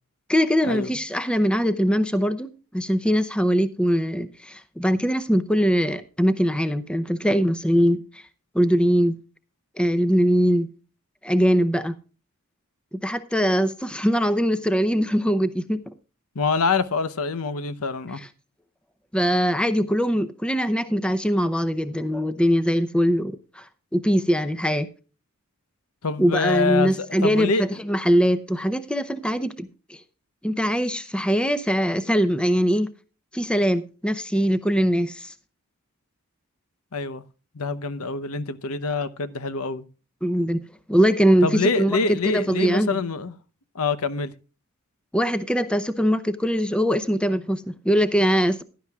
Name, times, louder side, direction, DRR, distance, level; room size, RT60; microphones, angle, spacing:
voice 1, 0.3-8.2 8.5-9.2 9.8-10.7 11.2-11.9 12.9-15.9 18.2-18.3 19.1-24.9 26.2-30.0 30.4-32.9 33.3-35.3 40.2-40.6 40.9-43.0 45.1-48.6, equal, 5° left, 0.7 m, -22 dB
voice 2, 16.3-18.2 26.0-27.7 36.9-37.2 37.5-39.9 41.4-43.3 43.7-44.3, left 4 dB, 75° left, 0.8 m, -25 dB
16.5 x 11.5 x 2.4 m
head